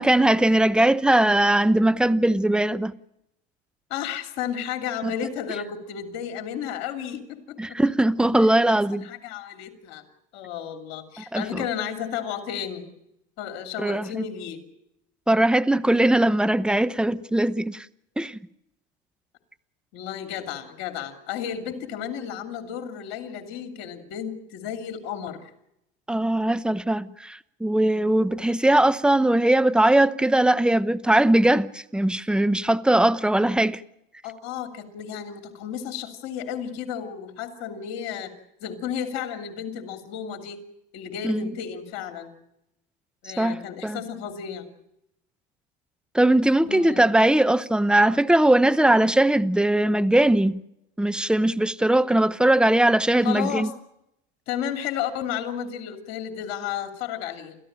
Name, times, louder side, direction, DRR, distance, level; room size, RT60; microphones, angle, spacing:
voice 1, 0.0-2.9 5.0-5.1 7.6-9.0 11.3-11.6 13.8-14.2 15.3-17.9 18.2-18.4 26.1-33.8 41.2-41.5 43.4-43.6 43.8-44.0 46.1-50.6 51.0-53.7, right 1 dB, 5° right, 0.9 m, -20 dB
voice 2, 3.9-7.8 8.3-10.0 10.3-12.9 13.4-14.6 19.9-25.5 34.2-38.3 38.6-40.6 40.9-42.3 43.2-44.7 46.7-47.1 53.2-53.7 54.5-57.6, left 9 dB, 70° left, 2.8 m, -33 dB
29.5 x 14.0 x 8.8 m
supercardioid pair, 90°, 29 cm